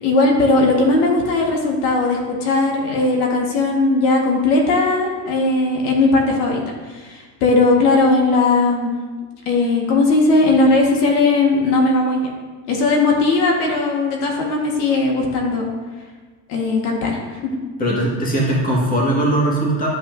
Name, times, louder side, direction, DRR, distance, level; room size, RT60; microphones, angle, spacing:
voice 1, 0.0-6.6 6.9-9.0 9.5-12.3 12.7-15.7 16.5-17.6, left 3 dB, 65° left, 0 dB, 1.7 m, -18 dB
voice 2, 17.8-19.9, right 1 dB, 15° left, -3 dB, 1.8 m, -19 dB
13.0 x 5.6 x 2.7 m, 1.4 s
supercardioid pair, 145°, 48 cm